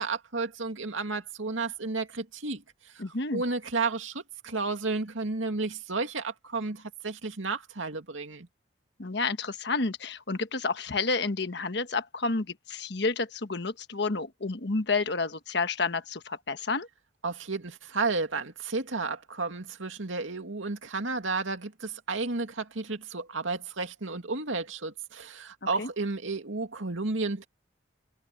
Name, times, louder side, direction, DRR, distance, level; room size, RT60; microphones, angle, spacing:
voice 1, 0.0-2.6 2.9-3.0 3.3-8.5 17.2-27.5, right 3 dB, 85° right, 2.4 m, -32 dB
voice 2, 3.0-3.4 9.0-16.9 25.8-25.9, left 3 dB, 60° left, 1.3 m, -30 dB
head